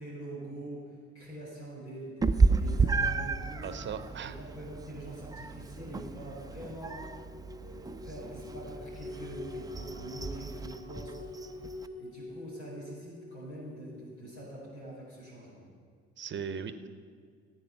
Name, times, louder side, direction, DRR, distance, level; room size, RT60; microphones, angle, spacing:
voice 1, 0.0-3.7 4.2-7.1 7.6-11.2 12.0-15.7, right 1 dB, 85° left, -5 dB, 4.2 m, -44 dB
Meow, 2.2-11.9, right 4 dB, 10° right, 0.6 m, -32 dB
voice 2, 3.6-4.4 16.2-16.9, right 7 dB, 35° right, 11 dB, 0.9 m, -38 dB
sound 1, 6.8-14.4, left 3 dB, 25° left, 2.6 m, -46 dB
14.5 x 8.7 x 5.8 m, 2.1 s
figure-of-eight pair, 50°, 32 cm